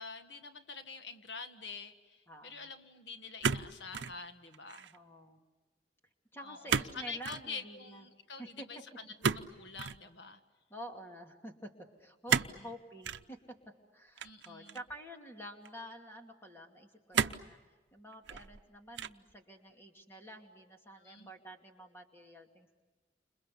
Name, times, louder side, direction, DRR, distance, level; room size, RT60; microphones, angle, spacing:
voice 1, 0.0-4.9 6.4-8.8 9.2-10.4 12.3-12.4 14.2-14.8 21.0-21.3, left 4 dB, 80° left, 7 dB, 1.6 m, -46 dB
voice 2, 2.3-2.7 4.8-5.4 6.3-8.1 8.4-8.7 10.7-11.7 12.0-13.6 13.9-17.6 17.9-22.8, equal, 15° left, 2 dB, 2.6 m, -49 dB
sound 1, 3.4-4.2 4.5-5.0 6.7-7.0 7.2-7.5 9.2-10.0 12.3-12.6 13.0-13.2 14.2-15.0 15.7-15.8 17.1-17.5 18.1-18.6 19.0-19.3, right 6 dB, 80° right, 0.8 m, -32 dB
30.0 x 27.5 x 7.0 m, 1.3 s
head